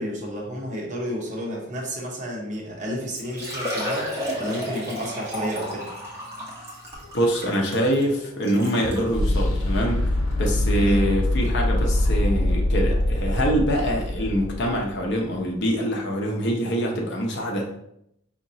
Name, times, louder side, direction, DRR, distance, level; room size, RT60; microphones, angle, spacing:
voice 1, 0.0-4.1 4.4-5.9 10.8-11.0, equal, 40° right, -2 dB, 1.0 m, -31 dB
Liquid, 2.7-2.8 3.2-9.1 9.8-9.9 10.3-10.4 12.0-12.1 12.3-12.4, equal, 15° right, 1.1 m, -33 dB
sound 1, 6.9-15.0, left 1 dB, 90° left, 0.8 m, -24 dB
voice 2, 7.1-10.1 10.4-17.7, equal, 60° left, 0 dB, 0.8 m, -24 dB
5.2 x 2.9 x 2.7 m, 0.76 s
head